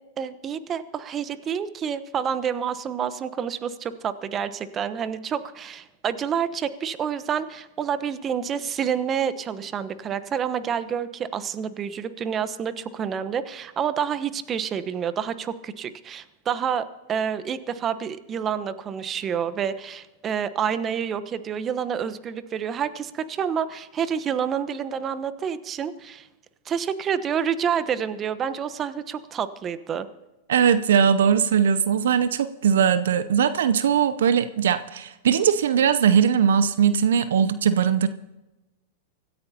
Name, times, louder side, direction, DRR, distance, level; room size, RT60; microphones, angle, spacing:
voice 1, 0.2-26.3 26.7-30.1, right 8 dB, 30° right, 13 dB, 1.0 m, -28 dB
voice 2, 30.5-38.1, right 8 dB, 70° right, 13 dB, 0.6 m, -20 dB
25.0 x 14.0 x 2.8 m, 1.0 s
hypercardioid pair, 100°, 0 cm